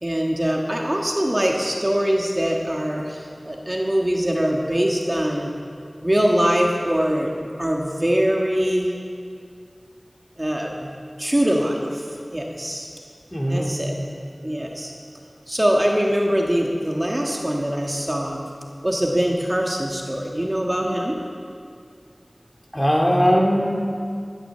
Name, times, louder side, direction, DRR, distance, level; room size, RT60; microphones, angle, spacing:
voice 1, 0.0-5.5 6.0-8.9 10.4-10.9 11.2-12.0 12.3-12.9 13.5-13.9 14.4-14.9 15.5-18.5 18.8-21.2, equal, 30° right, -1 dB, 1.6 m, -23 dB
voice 2, 13.3-13.7 22.7-23.7, equal, 15° left, -1 dB, 2.6 m, -19 dB
15.0 x 11.0 x 6.8 m, 2.3 s
wide cardioid pair, 40°, 0 cm